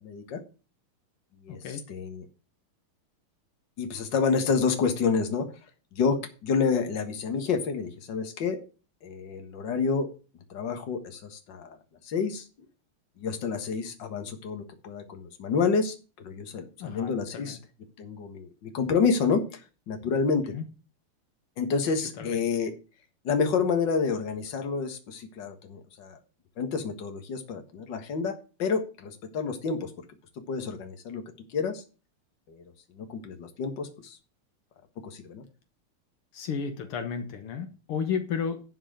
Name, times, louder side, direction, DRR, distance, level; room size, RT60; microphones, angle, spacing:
voice 1, 0.0-0.4 1.4-1.6 1.9-2.3 3.8-5.5 5.9-8.6 9.0-10.1 10.5-11.8 12.0-12.5 13.2-16.0 16.2-17.6 18.0-19.6 19.9-20.5 21.6-22.7 23.2-26.2 26.6-29.9 30.5-31.2 31.5-31.8 32.5-32.6 33.0-34.2 35.0-35.4, left 5 dB, 55° left, 6 dB, 2.2 m, -29 dB
voice 2, 1.5-1.9 16.8-17.6 20.5-20.6 22.2-22.4 36.3-38.6, left 6 dB, 80° left, 7 dB, 2.1 m, -33 dB
11.5 x 4.8 x 7.5 m, 0.34 s
omnidirectional pair, 2.4 m